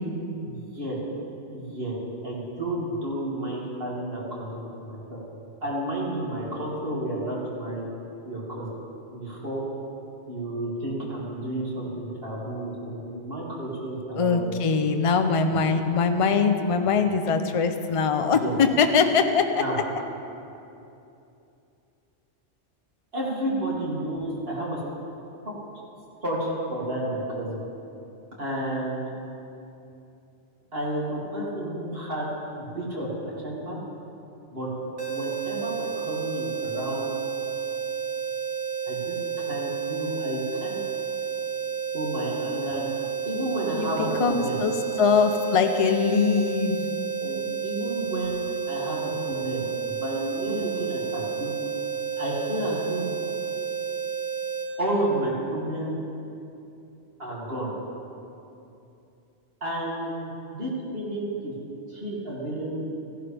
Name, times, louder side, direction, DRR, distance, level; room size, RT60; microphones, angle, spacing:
voice 1, 0.4-1.0 1.5-1.9 2.2-5.2 5.6-7.8 8.2-8.8 9.1-9.7 10.3-14.4 14.7-14.9 15.5-15.6 18.3-18.6 19.6-19.8 23.1-24.8 26.2-27.6 28.4-29.1 30.7-32.3 32.6-33.1 33.4-33.8 34.5-34.7 35.1-37.1 38.8-39.2 39.5-40.8 41.9-42.9 43.2-44.6 46.7-46.9 47.2-51.5 52.2-53.0 54.8-56.0 57.2-57.7 59.6-60.1 60.5-61.5 61.9-62.7, right 1 dB, 55° right, -7 dB, 3.0 m, -31 dB
voice 2, 14.2-19.6 43.8-43.9 44.2-44.7 45.0-46.8, left 5 dB, 35° left, 7 dB, 0.6 m, -22 dB
sound 1, 35.0-54.7, right 7 dB, 75° right, 1.8 m, -31 dB
16.0 x 11.5 x 3.4 m, 2.8 s
omnidirectional pair, 1.2 m